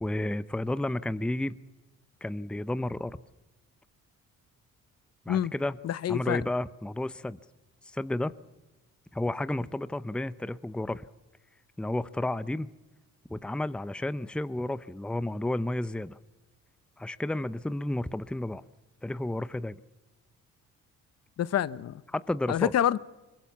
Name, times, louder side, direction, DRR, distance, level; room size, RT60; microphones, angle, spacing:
voice 1, 0.0-1.6 2.2-3.2 5.3-5.8 6.1-7.4 7.8-8.3 9.1-11.1 11.8-12.7 13.3-16.2 17.0-18.6 19.0-19.8 22.1-22.7, left 1 dB, 5° left, 0.6 m, -31 dB
voice 2, 5.8-6.4 21.4-22.0 22.5-23.0, left 10 dB, 55° left, 0.8 m, -27 dB
22.5 x 21.5 x 7.2 m
cardioid pair, 90°, 30 cm